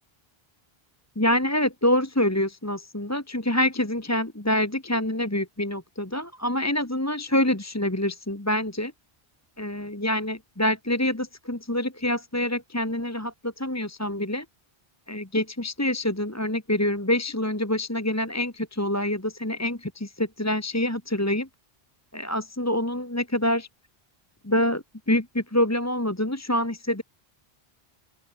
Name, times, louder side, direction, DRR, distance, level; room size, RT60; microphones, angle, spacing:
voice 1, 1.2-8.9 9.6-14.5 15.1-21.5 22.1-23.7 24.4-27.0, left 1 dB, 15° left, 1.8 m, -26 dB
open air
omnidirectional pair, 1.0 m